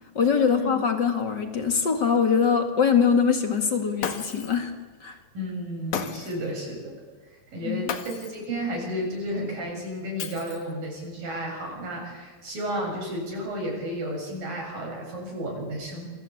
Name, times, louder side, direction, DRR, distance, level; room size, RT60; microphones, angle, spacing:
voice 1, 0.1-4.7 5.0-5.2 7.6-7.9, left 6 dB, 40° left, 6 dB, 1.8 m, -23 dB
Shatter, 4.0-4.6 5.9-6.5 7.9-8.5 10.2-10.8, left 7 dB, 55° left, 2.7 m, -33 dB
voice 2, 5.3-7.0 7.5-16.1, equal, 55° right, -1 dB, 9.0 m, -32 dB
28.5 x 22.0 x 8.5 m, 1.3 s
omnidirectional pair, 4.7 m